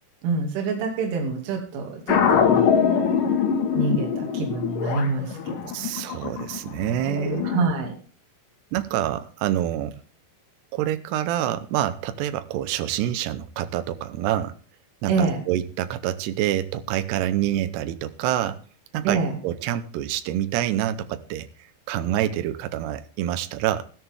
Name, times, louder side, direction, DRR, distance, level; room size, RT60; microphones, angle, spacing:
voice 1, 0.2-2.7 3.0-3.1 3.7-5.8 7.4-7.9 15.1-15.4 19.0-19.4, right 4 dB, 65° right, 4.9 m, -26 dB
sound 1, 2.1-7.7, left 7 dB, 55° left, 2.6 m, -23 dB
voice 2, 5.7-7.5 8.7-10.0 10.7-14.6 15.0-18.6 18.9-19.2 19.4-21.5 21.9-23.8, right 12 dB, 90° right, 2.3 m, -27 dB
14.5 x 14.0 x 3.6 m
omnidirectional pair, 6.0 m